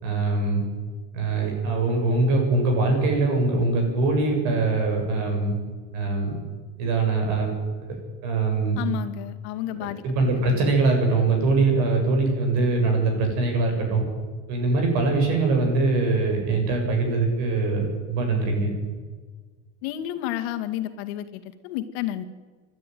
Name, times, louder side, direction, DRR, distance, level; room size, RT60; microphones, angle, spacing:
voice 1, 0.0-0.6 1.1-5.5 5.9-6.4 6.8-7.5 8.2-8.8 9.7-14.0 14.5-18.7, right 3 dB, 55° right, 3 dB, 7.6 m, -22 dB
voice 2, 8.8-10.0 19.8-22.2, left 12 dB, 65° left, 7 dB, 2.2 m, -31 dB
26.0 x 12.5 x 9.4 m, 1.5 s
cardioid pair, 175°, 33 cm